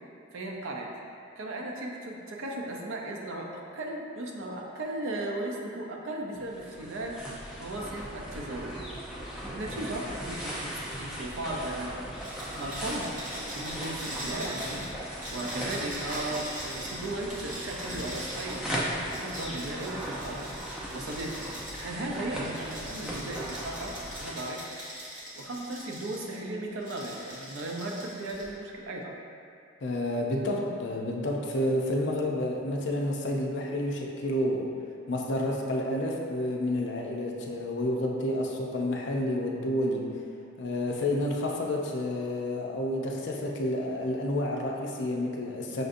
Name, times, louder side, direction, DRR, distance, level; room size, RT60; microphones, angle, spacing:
voice 1, 0.3-0.9 1.4-8.8 9.5-12.0 12.6-13.2 13.5-14.9 15.3-18.6 19.1-21.5 21.8-23.9 24.2-24.6 25.4-29.1, right 1 dB, 85° right, -1 dB, 0.5 m, -36 dB
sound 1, 6.3-24.3, equal, ahead, 0.5 m, -38 dB
sound 2, 12.2-21.9 22.5-26.4 26.8-28.6, equal, 40° right, 0.9 m, -42 dB
voice 2, 29.8-34.7 35.1-40.1 40.6-45.8, left 1 dB, 60° left, 0 dB, 0.5 m, -30 dB
6.3 x 2.5 x 2.6 m, 2.4 s
head